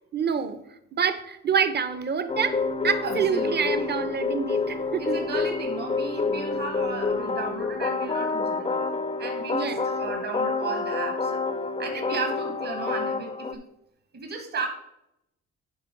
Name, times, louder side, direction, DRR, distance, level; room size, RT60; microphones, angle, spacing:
voice 1, 0.1-0.6 0.9-5.2 9.5-9.8, right 6 dB, 35° right, 0.7 m, -27 dB
sound 1, 2.3-13.5, left 4 dB, 20° left, 0.5 m, -28 dB
voice 2, 3.0-3.9 5.0-8.9 9.2-11.4 11.8-13.6 14.1-14.7, right 4 dB, 55° right, 1.5 m, -34 dB
9.7 x 3.6 x 5.2 m
cardioid pair, 90°, 30 cm